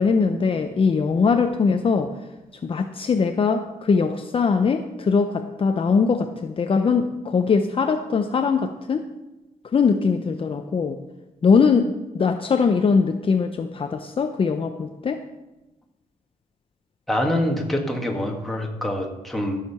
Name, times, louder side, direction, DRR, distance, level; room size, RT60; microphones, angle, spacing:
voice 1, 0.0-2.1 2.6-9.0 9.7-11.0 11.4-15.2, left 5 dB, 35° left, 6 dB, 0.7 m, -21 dB
voice 2, 17.1-19.6, left 1 dB, ahead, 0 dB, 1.9 m, -25 dB
13.5 x 6.6 x 5.8 m, 1.0 s
cardioid pair, 120°, 15 cm